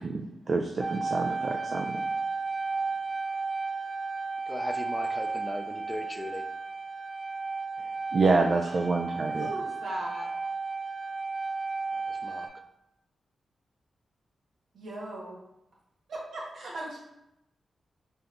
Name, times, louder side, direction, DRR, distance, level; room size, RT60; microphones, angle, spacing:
voice 1, 0.0-2.0 8.1-9.5, right 3 dB, 55° right, 3 dB, 0.3 m, -27 dB
sound 1, 0.8-12.5, right 4 dB, 40° right, 0.7 m, -33 dB
voice 2, 4.5-6.5 11.9-12.5, left 1 dB, 20° left, 5 dB, 0.4 m, -38 dB
voice 3, 9.4-10.3 14.7-15.4 16.1-17.0, right 1 dB, 85° right, -3 dB, 1.0 m, -38 dB
5.1 x 2.9 x 2.5 m, 0.87 s
cardioid pair, 75°, 0 cm